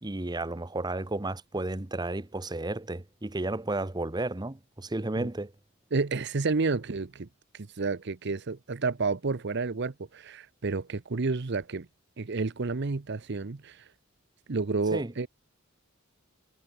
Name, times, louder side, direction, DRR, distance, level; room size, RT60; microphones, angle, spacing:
voice 1, 0.0-5.5 14.9-15.1, right 2 dB, 20° right, 0.9 m, -33 dB
voice 2, 5.9-7.3 7.5-11.9 12.2-13.9 14.5-15.3, right 4 dB, 55° right, 0.8 m, -30 dB
head